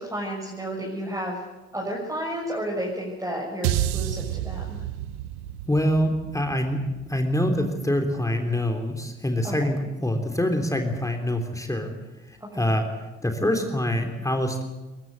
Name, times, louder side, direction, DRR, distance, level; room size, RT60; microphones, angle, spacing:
voice 1, 0.0-1.4 1.7-4.8 9.4-9.5 12.4-12.6, equal, 10° right, -3 dB, 6.6 m, -32 dB
sound 1, 3.6-8.0, right 13 dB, 65° right, 1.0 m, -30 dB
voice 2, 5.7-12.0 12.3-14.6, left 1 dB, 10° left, 4 dB, 3.4 m, -25 dB
23.0 x 22.0 x 8.2 m, 1.1 s
figure-of-eight pair, 50°, 34 cm